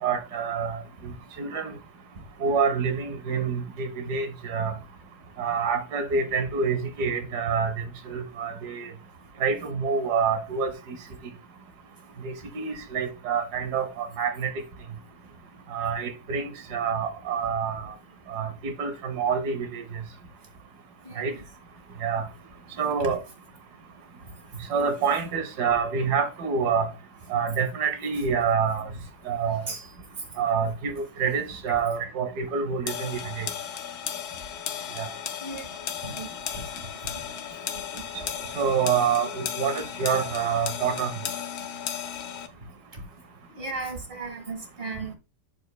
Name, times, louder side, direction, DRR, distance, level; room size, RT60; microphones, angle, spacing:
voice 1, 0.0-1.1 1.4-1.7 2.4-4.7 5.4-8.9 9.4-11.0 12.2-14.5 15.7-17.8 18.3-19.8 21.2-21.3 22.0-22.3 22.8-23.2 24.7-26.9 27.3-28.9 29.3-29.6 30.4-33.5 35.0-35.1 38.5-41.1, right 6 dB, 85° right, 1.5 m, -27 dB
voice 2, 21.1-21.4 23.0-23.1 29.7-29.9 31.7-32.1 35.4-35.7 36.0-36.3 37.7-38.5 42.9-43.0 43.5-45.1, right 3 dB, 35° right, 1.9 m, -36 dB
sound 1, 32.9-42.5, left 9 dB, 80° left, 1.2 m, -35 dB
8.1 x 6.6 x 2.2 m
omnidirectional pair, 1.7 m